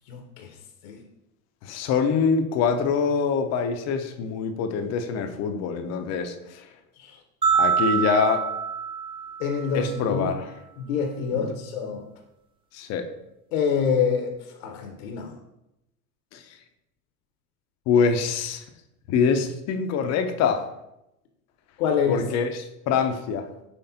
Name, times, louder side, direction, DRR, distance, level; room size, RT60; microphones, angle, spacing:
voice 1, 0.1-0.5 0.8-1.0 7.0-7.2 9.4-10.3 10.8-12.0 13.5-14.3 14.6-15.3 21.8-22.3, left 6 dB, 65° left, 3 dB, 0.8 m, -26 dB
voice 2, 1.6-6.7 7.5-8.4 9.7-10.5 11.3-11.5 12.7-13.0 16.3-16.4 17.9-18.6 19.1-20.6 22.1-23.5, left 6 dB, 35° left, 6 dB, 0.5 m, -24 dB
sound 1, 7.4-9.8, right 7 dB, 10° right, 0.5 m, -25 dB
5.7 x 3.2 x 2.7 m, 0.88 s
hypercardioid pair, 85°, 47 cm